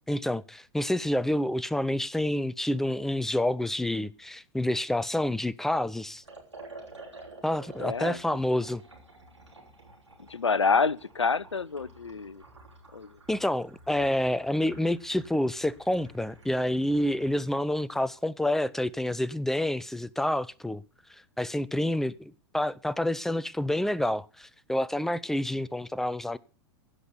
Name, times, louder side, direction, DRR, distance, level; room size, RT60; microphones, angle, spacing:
voice 1, 0.1-6.2 7.4-8.8 13.3-20.8 21.4-26.4, left 1 dB, 5° left, 0.5 m, -28 dB
Liquid, 6.2-17.4, right 2 dB, 85° right, 5.1 m, -51 dB
voice 2, 7.8-8.4 10.3-12.4 12.9-13.2, left 5 dB, 85° left, 0.5 m, -28 dB
16.5 x 6.0 x 6.7 m
figure-of-eight pair, 95°, 15 cm